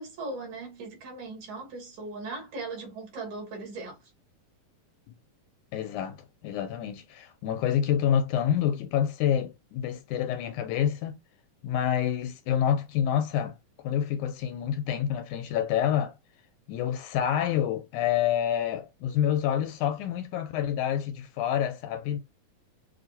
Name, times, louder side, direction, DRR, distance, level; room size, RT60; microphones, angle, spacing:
voice 1, 0.0-4.1, right 3 dB, 65° right, 3.8 m, -38 dB
voice 2, 5.7-11.2 11.6-13.6 13.8-16.1 16.7-22.2, left 9 dB, 80° left, 2.0 m, -27 dB
7.1 x 2.7 x 2.7 m
omnidirectional pair, 3.8 m